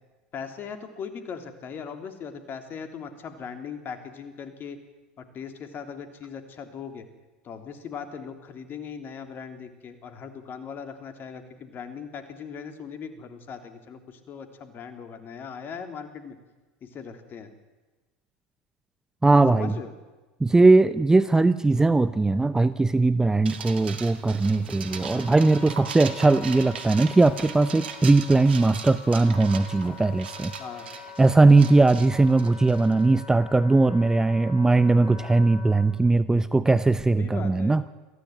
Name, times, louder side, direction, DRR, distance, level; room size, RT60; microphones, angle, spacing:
voice 1, 0.3-4.8 5.2-7.0 7.4-16.4 16.8-17.5 19.5-19.9 25.0-25.2 30.6-30.9 37.1-37.8, left 6 dB, 40° left, 8 dB, 3.4 m, -39 dB
voice 2, 19.2-19.7 20.4-30.5 31.2-37.9, right 3 dB, 10° right, 14 dB, 0.7 m, -20 dB
sound 1, 23.4-33.0, right 7 dB, 85° right, 2.0 m, -39 dB
Wind instrument woodwind instrument, 24.4-35.9, left 6 dB, 65° left, 3.1 m, -44 dB
23.0 x 15.0 x 9.5 m, 1.2 s
hypercardioid pair, 85°, 5 cm